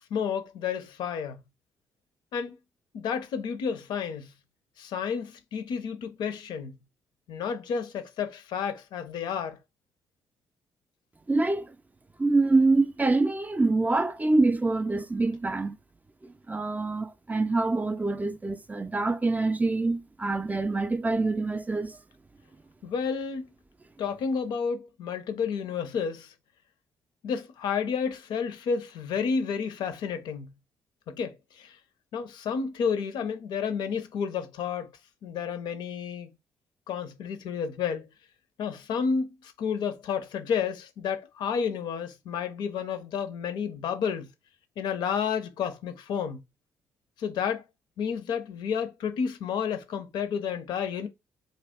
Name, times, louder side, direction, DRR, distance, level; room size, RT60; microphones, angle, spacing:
voice 1, 0.1-1.4 2.3-2.6 2.9-4.3 4.8-6.7 7.3-9.6 22.8-23.5 24.0-26.3 27.2-30.5 31.1-31.8 32.1-34.9 35.2-36.3 36.9-38.1 38.6-44.3 44.8-46.4 47.2-47.6 48.0-51.1, left 6 dB, 75° left, 0.6 m, -31 dB
voice 2, 11.3-11.7 12.2-15.8 16.2-22.0, right 3 dB, 20° right, 0.4 m, -25 dB
2.6 x 2.3 x 3.5 m
hypercardioid pair, 50°, 8 cm